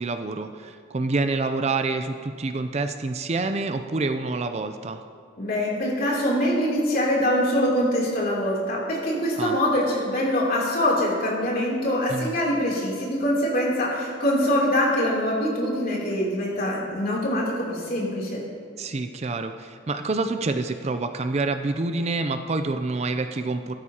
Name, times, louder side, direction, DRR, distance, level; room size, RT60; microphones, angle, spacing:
voice 1, 0.0-5.0 9.4-9.6 12.1-12.3 18.8-23.7, right 3 dB, 35° right, 8 dB, 0.4 m, -27 dB
voice 2, 5.4-18.4, equal, 50° left, -4 dB, 3.1 m, -24 dB
15.5 x 12.5 x 2.9 m, 2.2 s
head